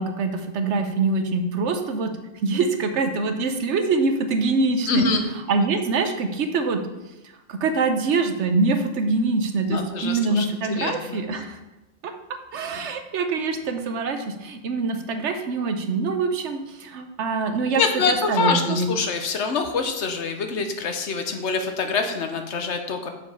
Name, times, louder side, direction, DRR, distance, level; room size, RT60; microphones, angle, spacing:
voice 1, 0.0-2.1 2.4-5.0 5.5-6.8 7.5-11.6 12.0-12.1 12.5-17.8 18.1-18.9, right 3 dB, 75° right, 7 dB, 1.1 m, -24 dB
voice 2, 4.9-5.2 9.7-11.2 17.8-23.1, left 4 dB, 70° left, 6 dB, 1.2 m, -25 dB
6.5 x 5.1 x 5.5 m, 1.0 s
omnidirectional pair, 1.2 m